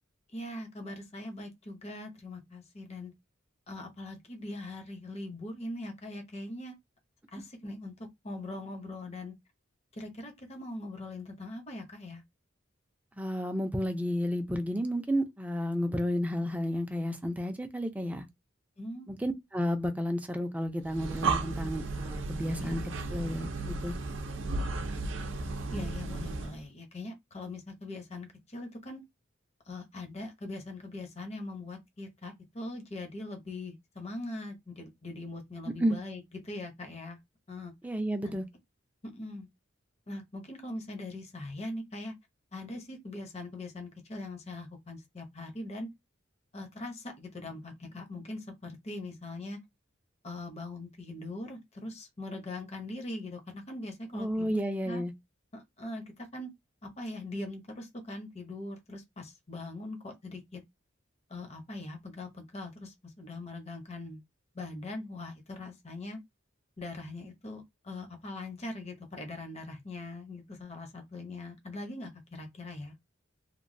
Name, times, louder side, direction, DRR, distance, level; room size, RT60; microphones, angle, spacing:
voice 1, 0.3-3.1 3.7-6.7 7.3-7.9 8.2-9.3 9.9-12.2 18.8-19.2 22.6-22.8 24.5-24.9 25.7-29.0 29.7-37.2 37.5-37.7 38.2-38.3 39.0-39.5 40.1-42.1 42.5-45.9 46.5-49.6 50.2-54.6 54.8-55.0 55.5-56.5 56.8-60.6 61.3-64.2 64.5-66.2 66.8-72.9, left 2 dB, 35° left, 0.6 m, -41 dB
voice 2, 13.2-18.3 19.1-22.8 23.1-23.9 35.7-36.0 37.8-38.5 54.1-55.1, equal, 10° right, 0.4 m, -31 dB
Breathing, 20.8-26.6, right 3 dB, 70° right, 0.5 m, -34 dB
3.0 x 2.1 x 2.6 m
head